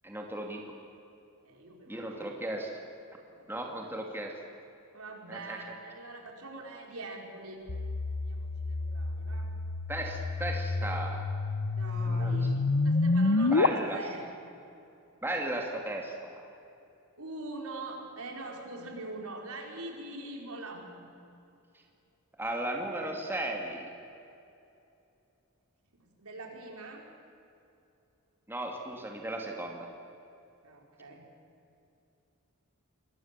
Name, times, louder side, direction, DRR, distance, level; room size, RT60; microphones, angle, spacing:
voice 1, 0.0-0.6 1.9-2.7 3.5-4.4 5.3-5.6 9.9-11.3 12.1-12.4 13.5-14.0 15.2-16.4 22.4-23.9 28.5-29.9, right 1 dB, 10° right, 1 dB, 2.6 m, -36 dB
voice 2, 1.4-2.4 3.3-3.9 4.9-7.6 8.2-9.5 11.7-14.3 17.2-21.1 26.0-27.1 30.6-31.2, right 2 dB, 80° right, 1 dB, 4.5 m, -43 dB
sound 1, 7.7-13.7, left 3 dB, 85° left, 0.9 m, -29 dB
26.0 x 21.0 x 7.5 m, 2.7 s
head